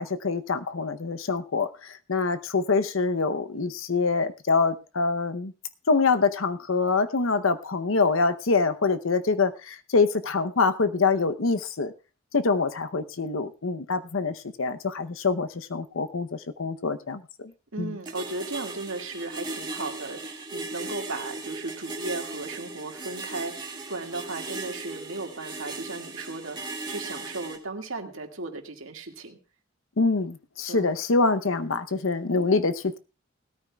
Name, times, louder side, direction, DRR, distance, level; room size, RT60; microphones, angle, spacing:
voice 1, 0.0-5.5 5.9-11.9 12.3-17.5 17.8-18.0 30.0-33.0, left 4 dB, 80° left, 11 dB, 0.8 m, -25 dB
voice 2, 17.7-29.4 30.7-31.0, right 2 dB, 80° right, 3 dB, 2.0 m, -36 dB
sound 1, 18.1-27.6, right 3 dB, 20° right, 2.1 m, -37 dB
19.5 x 13.5 x 2.3 m, 0.31 s
head